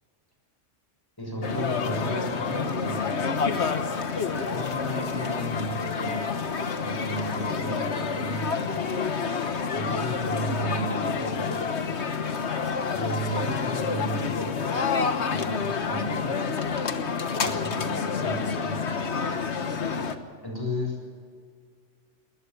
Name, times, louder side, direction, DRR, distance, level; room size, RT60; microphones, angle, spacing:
voice 1, 1.2-3.3 4.4-6.3 6.7-8.9 9.7-11.9 12.9-14.7 15.3-16.4 17.4-18.8 20.4-21.1, equal, 20° left, 0 dB, 7.0 m, -34 dB
sound 1, 1.4-20.2, left 5 dB, 65° left, 1.5 m, -28 dB
21.0 x 19.5 x 7.0 m, 2.1 s
omnidirectional pair, 1.2 m